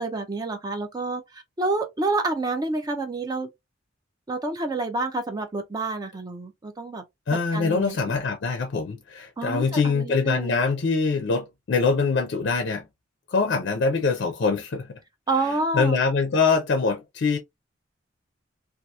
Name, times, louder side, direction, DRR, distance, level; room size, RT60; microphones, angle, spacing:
voice 1, 0.0-3.5 4.3-7.0 7.5-8.2 9.4-10.6 15.3-16.0, right 3 dB, 20° right, 0.4 m, -28 dB
voice 2, 7.3-12.8 13.3-14.9 15.7-17.4, left 4 dB, 60° left, 0.4 m, -23 dB
2.7 x 2.3 x 2.2 m
head